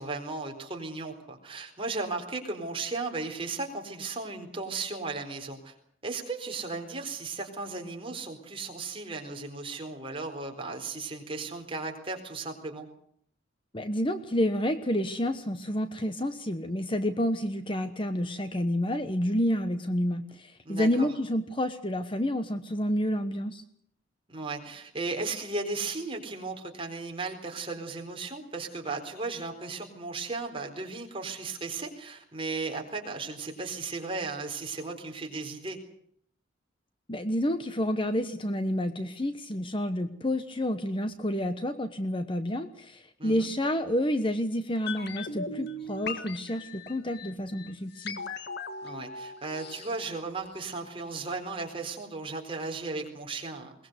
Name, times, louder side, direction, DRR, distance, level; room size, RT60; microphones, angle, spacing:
voice 1, 0.0-5.7 6.0-12.9 20.7-21.1 24.3-35.8 43.2-43.5 48.8-53.7, right 3 dB, 25° right, 2 dB, 4.1 m, -35 dB
voice 2, 13.7-23.6 37.1-48.2, equal, 25° left, 9 dB, 1.1 m, -29 dB
sound 1, 44.9-50.9 51.2-51.3, left 3 dB, 55° left, 1.8 m, -39 dB
22.0 x 20.0 x 8.1 m, 0.65 s
head